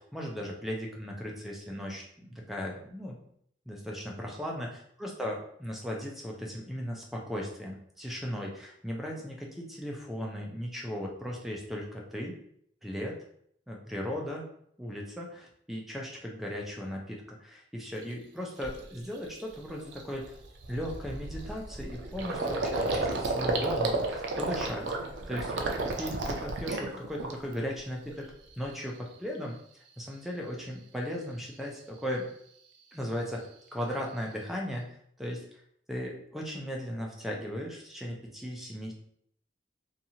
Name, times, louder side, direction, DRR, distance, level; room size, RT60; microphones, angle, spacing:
voice 1, 0.0-3.1 3.7-12.4 12.8-13.2 13.7-14.5 14.8-20.2 20.7-24.9 25.3-28.2 28.6-32.3 32.9-34.8 35.2-35.4 35.9-38.9, equal, ahead, -1 dB, 0.4 m, -37 dB
Gurgling, 18.0-18.1 18.6-18.9 19.3-19.4 19.7-27.7 28.0-28.7, right 2 dB, 75° right, 0.4 m, -32 dB
2.8 x 2.4 x 2.7 m, 0.67 s
head